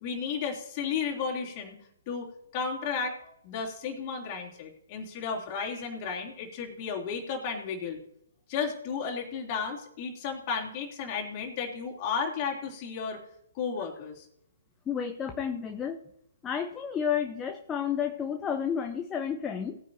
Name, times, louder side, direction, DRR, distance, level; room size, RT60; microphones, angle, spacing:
voice 1, 0.0-1.8 2.1-8.0 8.5-13.2 13.6-14.3, left 6 dB, 30° left, -1 dB, 3.3 m, -33 dB
voice 2, 14.9-16.0 16.4-19.8, left 8 dB, 15° left, 5 dB, 0.8 m, -31 dB
19.0 x 9.4 x 2.9 m, 0.75 s
figure-of-eight pair, 130°, 0 cm